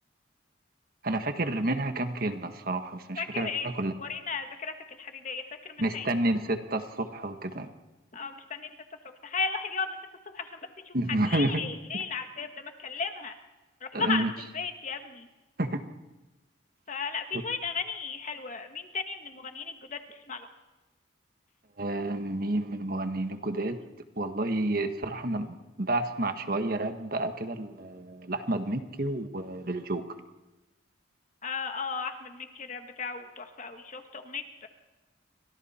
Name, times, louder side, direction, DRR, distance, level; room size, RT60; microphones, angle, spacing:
voice 1, 1.0-3.9 5.8-7.7 10.9-11.6 11.9-12.0 13.9-14.3 15.6-15.8 17.3-17.4 21.8-23.8 24.2-30.1, right 1 dB, 50° right, 7 dB, 1.5 m, -30 dB
voice 2, 3.2-3.7 4.0-6.1 8.1-8.8 9.2-9.9 10.3-10.6 10.8-11.0 11.3-13.3 13.8-15.3 16.9-20.5 31.4-34.7, left 5 dB, 40° left, 6 dB, 1.6 m, -35 dB
30.0 x 24.5 x 4.4 m, 1.1 s
head